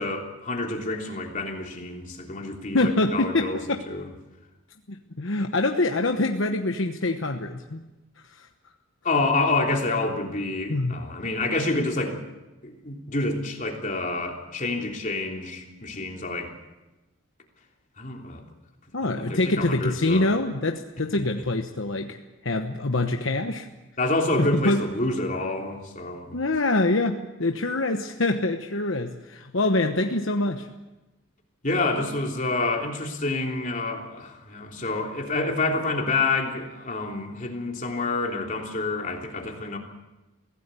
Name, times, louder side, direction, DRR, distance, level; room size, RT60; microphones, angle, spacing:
voice 1, 0.0-4.1 9.0-12.2 12.6-16.5 18.0-18.4 19.0-20.3 24.0-26.4 31.6-39.8, left 2 dB, 35° left, 1 dB, 3.3 m, -28 dB
voice 2, 2.7-3.8 4.9-7.8 8.3-8.5 10.7-11.1 18.9-22.2 22.4-23.7 24.4-24.8 26.3-30.7, left 2 dB, 65° left, 4 dB, 1.1 m, -25 dB
24.0 x 17.0 x 8.3 m, 1.1 s
head